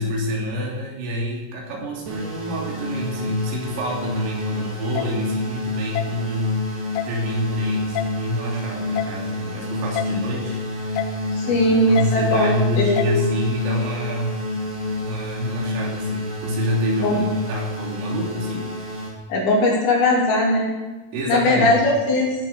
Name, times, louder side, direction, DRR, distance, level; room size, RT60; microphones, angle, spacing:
voice 1, 0.0-6.8 7.1-11.1 11.4-11.6 11.9-14.4 15.0-18.7 21.1-21.7, left 1 dB, 80° right, -2 dB, 5.6 m, -27 dB
sound 1, 2.1-19.1, left 1 dB, 45° right, 3.8 m, -29 dB
sound 2, 5.0-5.1 6.0-6.1 7.0-7.1 8.0-8.1 9.0-9.1 10.0-10.1 11.0-11.1 12.0-12.1 13.0-13.1, left 13 dB, 80° left, 2.8 m, -26 dB
voice 2, 11.3-13.2 17.0-17.2 19.3-20.8 21.3-22.4, left 1 dB, 65° left, -3 dB, 5.0 m, -19 dB
16.5 x 7.2 x 7.4 m, 1.2 s
omnidirectional pair, 5.9 m